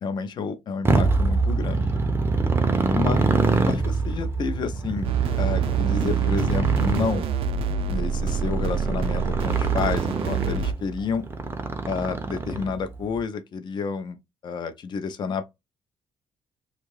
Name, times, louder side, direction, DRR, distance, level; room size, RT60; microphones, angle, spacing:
voice 1, 0.0-2.0 2.9-3.2 3.6-5.1 5.4-7.3 7.9-11.3 11.9-14.2 14.4-15.5, left 5 dB, 50° left, 0.6 m, -30 dB
Motorcycle, 0.8-12.9, right 3 dB, 25° right, 0.5 m, -25 dB
sound 1, 5.0-10.7, right 7 dB, 70° right, 0.5 m, -26 dB
2.7 x 2.4 x 3.1 m
cardioid pair, 130°, 10 cm